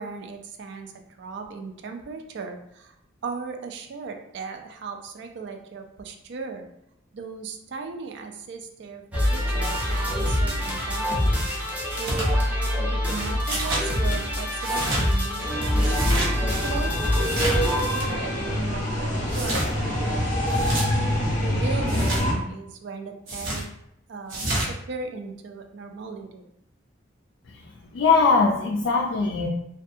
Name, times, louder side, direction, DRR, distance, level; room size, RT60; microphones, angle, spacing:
voice 1, 0.0-2.9 3.2-6.6 7.1-9.0 9.3-11.4 11.9-16.9 17.4-20.9 21.4-23.6 24.1-26.4, right 4 dB, 60° right, 5 dB, 0.3 m, -37 dB
sound 1, 9.1-18.6, left 1 dB, 5° right, 0.5 m, -25 dB
sound 2, 12.0-12.3 13.4-13.9 14.6-15.1 15.8-16.3 17.2-17.7 19.3-19.7 20.5-20.9 21.9-22.2 23.3-23.6 24.3-24.7, right 1 dB, 75° right, 0.8 m, -28 dB
sound 3, 15.4-22.3, equal, 40° left, 0.6 m, -26 dB
voice 2, 27.9-29.5, left 4 dB, 65° left, -1 dB, 0.3 m, -21 dB
2.5 x 2.3 x 2.6 m, 0.78 s
head